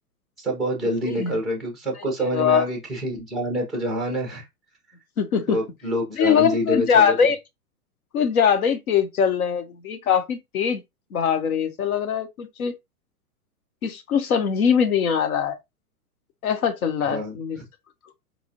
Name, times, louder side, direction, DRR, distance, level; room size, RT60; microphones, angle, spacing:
voice 1, 0.4-4.5 5.5-7.1 17.0-17.6, equal, ahead, 0.4 m, -27 dB
voice 2, 2.3-2.7 5.2-5.6 6.2-7.4 8.1-10.8 11.1-12.7 13.8-15.6 16.4-17.6, left 7 dB, 65° left, 0.9 m, -22 dB
4.2 x 2.3 x 2.7 m
hypercardioid pair, 115°, 46 cm